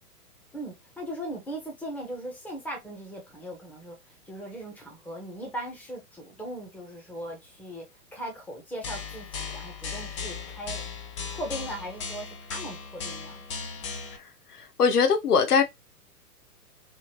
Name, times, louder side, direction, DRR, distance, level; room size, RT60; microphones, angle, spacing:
voice 1, 0.5-7.9 8.1-10.8 11.3-13.4, right 1 dB, 5° left, 1.0 m, -39 dB
sound 1, 8.8-14.2, left 5 dB, 20° left, 0.4 m, -37 dB
voice 2, 14.6-15.6, left 5 dB, 75° left, 0.8 m, -21 dB
3.5 x 2.5 x 2.9 m
figure-of-eight pair, 115°, 46 cm